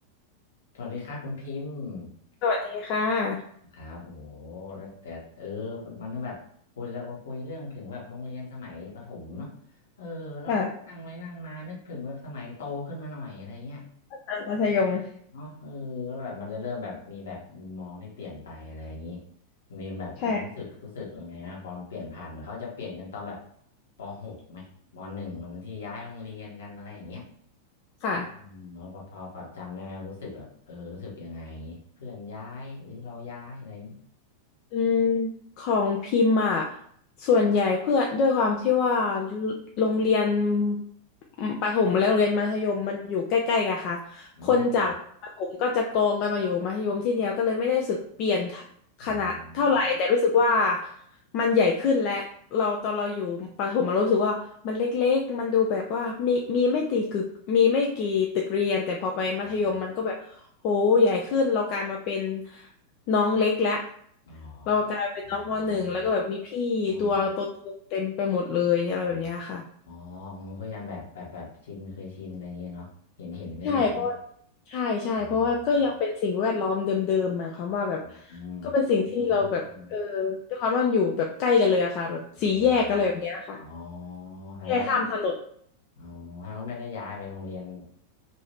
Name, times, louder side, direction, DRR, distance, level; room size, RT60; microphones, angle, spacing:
voice 1, 0.7-2.1 3.7-6.4 6.8-9.5 10.0-13.8 14.6-14.9 15.3-19.2 19.7-23.4 24.0-27.3 28.4-34.0 44.4-44.9 49.0-49.8 59.4-59.8 64.3-64.8 65.2-66.1 66.9-67.4 68.9-69.3 69.9-72.9 73.2-74.1 75.1-76.0 78.0-78.7 79.2-79.9 82.5-82.7 83.6-85.0 86.0-87.8, left 3 dB, 65° left, -3 dB, 1.1 m, -39 dB
voice 2, 2.4-3.4 10.5-10.7 14.3-15.1 20.2-20.4 28.0-28.3 34.7-35.3 35.6-36.7 37.2-40.8 41.4-44.9 45.4-48.7 49.0-50.9 51.3-52.2 52.5-60.3 60.6-62.7 63.1-63.8 64.7-69.6 73.6-74.2 74.7-78.4 78.6-79.6 79.9-83.6 84.7-85.3, left 4 dB, 40° left, 0 dB, 0.4 m, -25 dB
2.8 x 2.7 x 3.3 m, 0.64 s
figure-of-eight pair, 90°, 0 cm